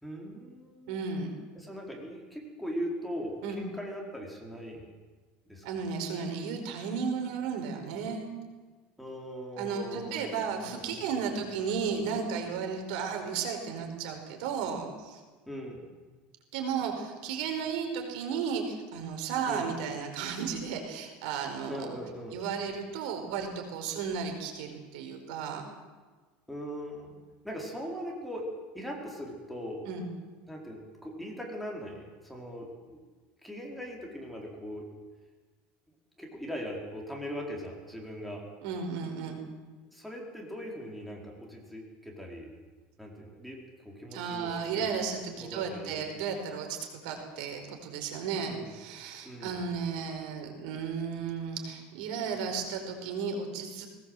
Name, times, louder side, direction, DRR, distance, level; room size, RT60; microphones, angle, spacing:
voice 1, 0.0-1.0 1.5-4.8 5.5-5.6 9.0-11.4 15.5-15.9 19.5-19.7 21.7-22.4 26.5-27.2 27.4-28.4 28.7-29.9 30.5-33.0 33.4-34.9 36.2-38.4 39.9-42.5 43.0-44.9 45.3-46.2 48.4-48.7 49.2-49.5, equal, ahead, -2 dB, 4.4 m, -40 dB
voice 2, 0.9-1.3 3.4-3.6 5.6-8.3 9.6-15.2 16.5-22.0 22.3-25.6 29.9-30.1 38.6-39.4 44.1-46.8 47.0-53.9, right 6 dB, 75° right, 4 dB, 5.0 m, -34 dB
21.0 x 19.0 x 8.0 m, 1.4 s
cardioid pair, 155°, 4 cm